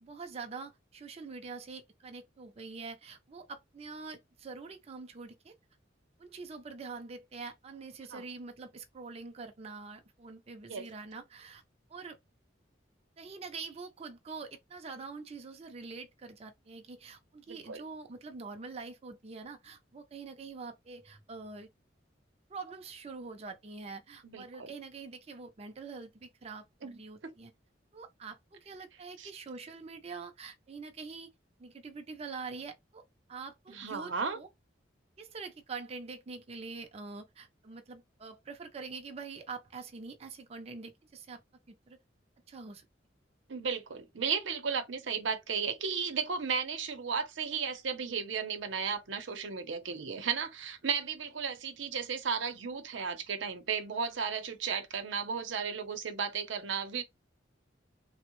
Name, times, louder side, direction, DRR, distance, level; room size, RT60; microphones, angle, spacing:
voice 1, 0.0-5.5 6.2-11.6 11.9-12.2 13.2-21.7 22.5-27.5 27.9-31.3 31.6-33.0 33.3-34.5 35.2-41.4 41.7-42.0 42.5-42.9, right 4 dB, 35° right, 0.4 m, -45 dB
voice 2, 17.5-17.8 24.2-24.7 26.8-27.0 29.2-29.3 33.7-34.4 43.5-57.0, right 6 dB, 90° right, 0.6 m, -34 dB
3.4 x 2.0 x 2.9 m
head